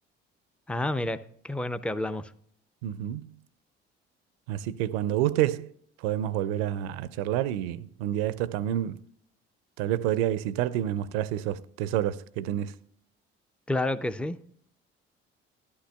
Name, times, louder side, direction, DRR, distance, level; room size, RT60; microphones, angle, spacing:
voice 1, 0.7-1.2 1.4-2.3 13.7-14.4, left 1 dB, 5° left, 0.4 m, -29 dB
voice 2, 2.8-3.4 4.5-5.7 6.0-9.0 9.8-12.8, right 12 dB, 70° right, 0.5 m, -28 dB
11.5 x 11.0 x 2.3 m
figure-of-eight pair, 50°, 31 cm